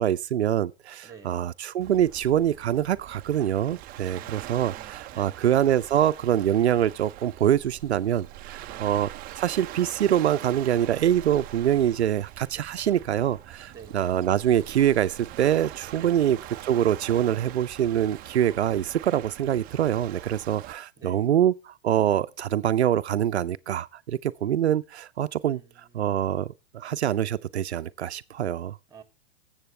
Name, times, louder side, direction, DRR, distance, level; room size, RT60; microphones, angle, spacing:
voice 1, 0.0-9.1 9.4-16.4 16.6-25.6 25.9-28.8, right 10 dB, 90° right, 0.6 m, -25 dB
voice 2, 1.0-1.5 4.1-5.5 8.7-9.0 13.7-14.1 16.0-16.2 21.0-21.3 25.5-26.2 28.9-29.0, right 6 dB, 10° right, 2.4 m, -49 dB
Waves surf, 1.8-20.7, right 14 dB, 25° right, 0.6 m, -43 dB
20.0 x 7.3 x 3.2 m
hypercardioid pair, 120°, 32 cm